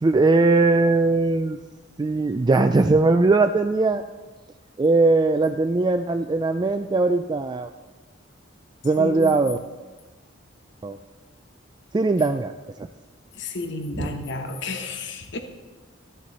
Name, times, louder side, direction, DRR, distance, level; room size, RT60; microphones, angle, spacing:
voice 1, 0.0-1.6 2.0-4.0 4.8-7.7 8.8-9.6 10.8-11.0 11.9-12.5 13.9-14.3, right 3 dB, 20° right, 8 dB, 0.3 m, -20 dB
voice 2, 9.0-9.4 13.3-15.4, left 3 dB, 65° left, 6 dB, 1.0 m, -32 dB
13.5 x 10.5 x 4.0 m, 1.3 s
head